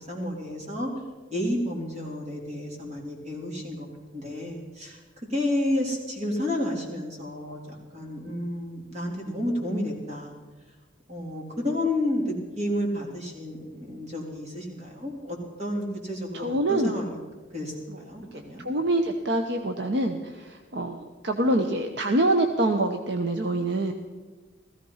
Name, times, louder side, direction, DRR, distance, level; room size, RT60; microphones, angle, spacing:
voice 1, 0.1-0.9 1.3-3.9 4.1-5.0 5.3-10.3 11.1-17.2 17.5-18.6, left 1 dB, 35° right, -1 dB, 3.4 m, -31 dB
voice 2, 16.3-17.0 17.9-18.0 18.6-23.9, right 1 dB, 65° right, 5 dB, 0.9 m, -25 dB
16.5 x 15.0 x 5.7 m, 1.3 s
head